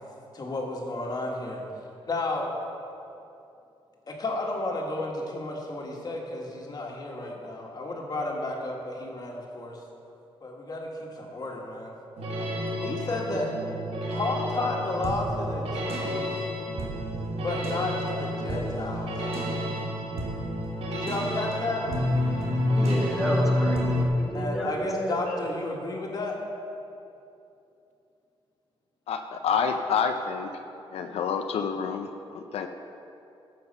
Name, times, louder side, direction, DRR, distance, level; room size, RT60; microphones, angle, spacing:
voice 1, 0.3-1.6 2.0-2.6 4.1-9.8 10.4-11.9 12.8-13.5 14.1-16.4 17.4-19.1 20.8-21.9 24.3-26.4, left 2 dB, 40° left, -1 dB, 1.9 m, -32 dB
sound 1, 12.2-24.1, left 1 dB, 75° right, 1.6 m, -29 dB
voice 2, 22.8-23.9 24.2-25.4, equal, 5° right, -3 dB, 2.2 m, -31 dB
voice 3, 29.1-30.5 30.9-32.7, left 6 dB, 80° left, 6 dB, 0.6 m, -28 dB
12.5 x 7.7 x 5.5 m, 2.7 s
cardioid pair, 105°, 10 cm